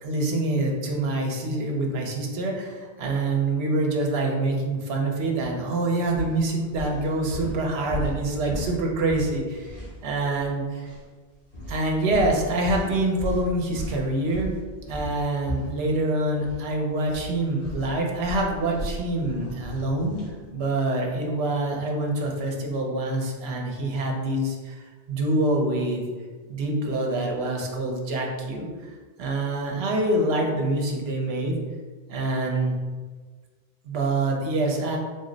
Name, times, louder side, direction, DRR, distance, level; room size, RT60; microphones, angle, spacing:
voice 1, 0.0-10.9 11.7-14.5 14.9-20.2 20.5-26.0 26.5-28.7 29.2-31.5 32.1-32.8 33.8-35.0, right 2 dB, 70° right, 1 dB, 0.9 m, -26 dB
sound 1, 5.4-5.6 6.0-10.5 10.8-11.0 11.5-16.6 16.9-20.4, right 1 dB, 90° left, 1.6 m, -36 dB
4.0 x 2.1 x 3.8 m, 1.4 s
omnidirectional pair, 1.1 m